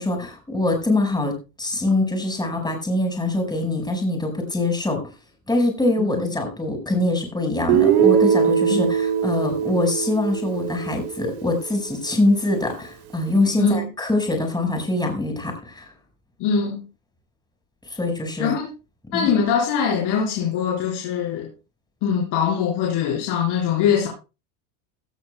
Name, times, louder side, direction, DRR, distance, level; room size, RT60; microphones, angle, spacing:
voice 1, 0.0-5.0 5.5-15.9 17.9-18.5 19.1-19.3, left 2 dB, 10° left, 3 dB, 5.2 m, -23 dB
Guitar, 7.7-11.7, right 8 dB, 85° right, 3.0 m, -21 dB
voice 2, 16.4-16.8 18.4-18.7 19.1-21.5 22.0-24.1, left 7 dB, 60° left, -2 dB, 4.7 m, -22 dB
17.0 x 13.5 x 2.3 m, 0.31 s
supercardioid pair, 100°, 44 cm